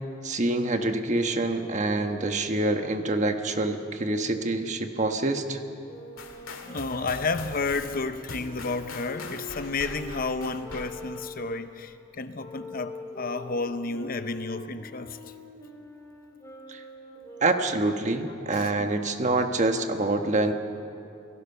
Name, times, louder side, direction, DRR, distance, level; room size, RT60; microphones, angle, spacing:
voice 1, 0.2-5.6 16.7-16.8 17.4-20.5, right 2 dB, 35° right, 6 dB, 1.2 m, -26 dB
sound 1, 5.8-11.6 12.4-18.0, left 2 dB, 15° left, 3.1 m, -44 dB
sound 2, 6.2-11.3, left 3 dB, 85° left, 2.2 m, -42 dB
voice 2, 6.6-15.2 18.5-18.9, left 3 dB, 45° left, 10 dB, 0.8 m, -31 dB
29.0 x 18.0 x 5.7 m, 2.6 s
head